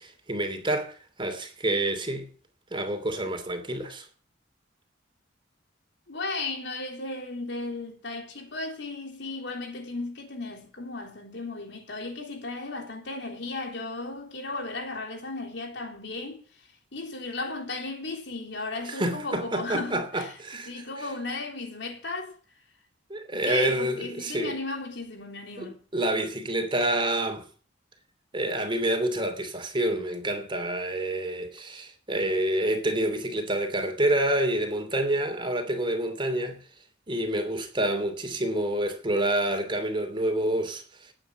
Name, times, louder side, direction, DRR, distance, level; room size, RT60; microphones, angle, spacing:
voice 1, 0.0-2.3 2.7-4.1 18.8-20.7 21.0-21.1 23.1-24.6 25.6-27.4 28.3-36.6 37.1-41.1, right 1 dB, 25° right, 2.9 m, -28 dB
voice 2, 6.1-16.4 16.9-20.3 20.7-22.3 23.3-25.8, left 3 dB, 65° left, 3.6 m, -35 dB
18.5 x 8.9 x 6.0 m
head